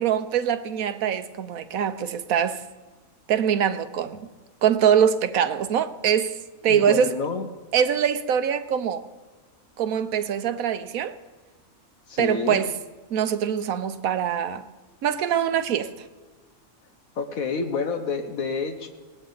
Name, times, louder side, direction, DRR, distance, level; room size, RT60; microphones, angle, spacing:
voice 1, 0.0-2.6 3.3-4.3 4.6-6.4 6.6-7.1 7.7-9.0 9.8-11.1 12.2-12.7 13.1-14.7 15.0-15.9, right 8 dB, 80° right, 1.2 m, -23 dB
voice 2, 6.7-7.5 12.1-12.6 17.2-18.9, left 5 dB, 75° left, 1.4 m, -28 dB
19.0 x 18.5 x 4.0 m
omnidirectional pair, 1.5 m